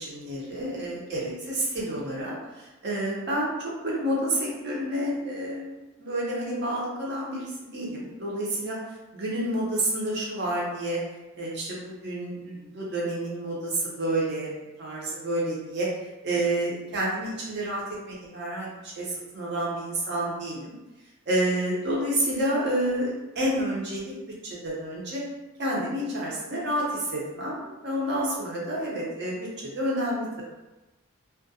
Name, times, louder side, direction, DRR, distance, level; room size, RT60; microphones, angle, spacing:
voice 1, 0.0-8.8 9.1-11.0 11.3-14.5 14.8-15.9 16.2-20.7 21.3-24.1 24.4-25.2 25.6-29.5 29.7-30.4, right 1 dB, 50° right, -4 dB, 0.7 m, -29 dB
2.3 x 2.1 x 2.6 m, 1.1 s
head